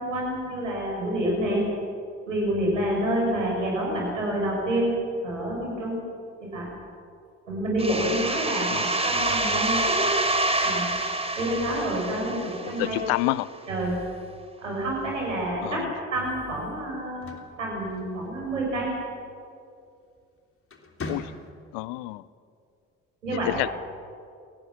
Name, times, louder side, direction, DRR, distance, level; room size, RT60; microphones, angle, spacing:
voice 1, 0.0-1.6 2.3-4.9 5.2-6.0 6.4-6.7 7.5-10.1 10.6-10.8 11.4-13.1 13.7-13.9 14.6-15.8 16.1-17.3 17.6-18.9 23.2-23.5, right 1 dB, 85° right, -2 dB, 6.8 m, -28 dB
sound 1, 7.8-13.3, right 2 dB, 15° right, 4.0 m, -27 dB
voice 2, 12.4-13.5 15.6-15.9 21.1-21.3 21.7-22.2 23.3-23.7, left 20 dB, 70° left, 20 dB, 0.8 m, -29 dB
sound 2, 17.0-18.5 20.0-20.2 20.6-21.8, left 2 dB, 35° left, 3.3 m, -40 dB
27.5 x 18.0 x 7.3 m, 2.3 s
figure-of-eight pair, 50°, 37 cm